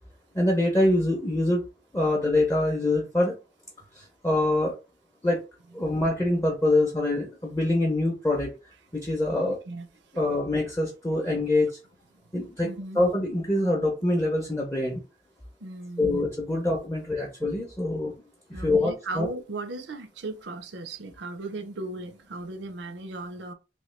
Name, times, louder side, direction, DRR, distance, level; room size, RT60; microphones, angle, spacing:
voice 1, 0.3-1.6 1.9-3.4 3.9-4.8 5.2-5.4 5.7-8.5 8.9-9.6 10.2-11.8 12.3-15.0 16.0-18.1 18.5-19.3, left 2 dB, 15° left, 0.5 m, -25 dB
voice 2, 12.6-13.0 15.6-16.2 16.5-16.7 18.5-23.5, right 2 dB, 75° right, 0.5 m, -37 dB
3.1 x 2.6 x 3.1 m
head